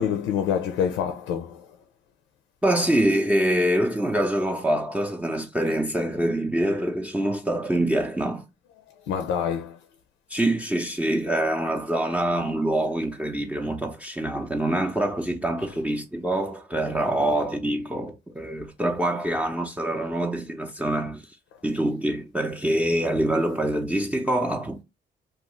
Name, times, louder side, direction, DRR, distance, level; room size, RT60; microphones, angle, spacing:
voice 1, 0.0-1.8 9.0-9.8 21.5-21.6, left 8 dB, 90° left, 0.4 m, -27 dB
voice 2, 2.6-8.5 10.3-21.4 21.6-24.8, right 1 dB, 5° right, 0.6 m, -25 dB
2.5 x 2.3 x 3.0 m
supercardioid pair, 65°, 19 cm